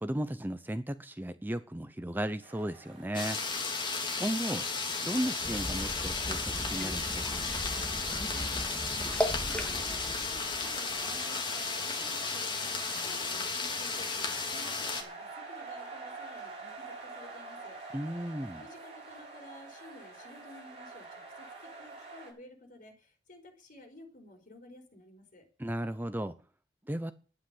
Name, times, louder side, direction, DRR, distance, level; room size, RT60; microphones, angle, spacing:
voice 1, 0.0-3.4 4.2-4.6 5.0-7.5 17.9-18.6 25.6-26.4 26.9-27.1, right 1 dB, 10° right, 11 dB, 0.7 m, -35 dB
sound 1, 2.4-22.3, right 3 dB, 35° right, 7.2 m, -48 dB
sound 2, 3.1-15.0, left 4 dB, 25° left, 3.1 m, -34 dB
sound 3, 5.4-11.2, equal, 5° left, 2.5 m, -37 dB
voice 2, 8.3-17.8 18.6-25.5, left 1 dB, 50° left, 5 dB, 4.7 m, -53 dB
12.0 x 10.0 x 7.9 m, 0.38 s
head